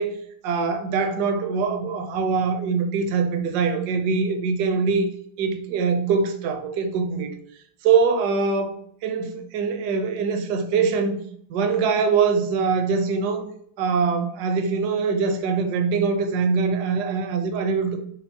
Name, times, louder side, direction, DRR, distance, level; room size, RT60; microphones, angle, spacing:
voice 1, 0.4-5.1 5.4-7.3 7.8-8.7 9.0-11.2 11.5-13.5 13.8-18.0, right 5 dB, 70° right, 1.0 m, -23 dB
5.5 x 2.0 x 4.3 m
omnidirectional pair, 2.3 m